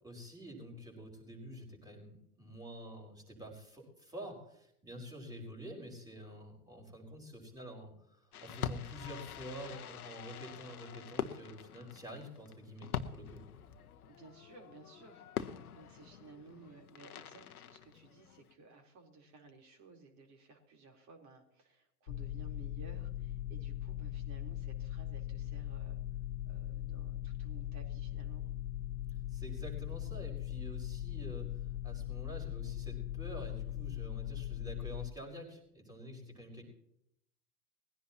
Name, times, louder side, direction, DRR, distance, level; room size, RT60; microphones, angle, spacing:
voice 1, 0.0-13.4 29.1-36.6, equal, 10° right, 1 dB, 5.2 m, -48 dB
Fireworks, 8.3-18.5, left 9 dB, 70° left, 1.2 m, -44 dB
voice 2, 14.1-26.0 26.5-28.5, right 3 dB, 35° right, 2 dB, 4.0 m, -57 dB
sound 1, 22.1-35.1, left 13 dB, 45° left, 0.7 m, -40 dB
20.5 x 16.0 x 3.0 m, 0.77 s
figure-of-eight pair, 85°, 45 cm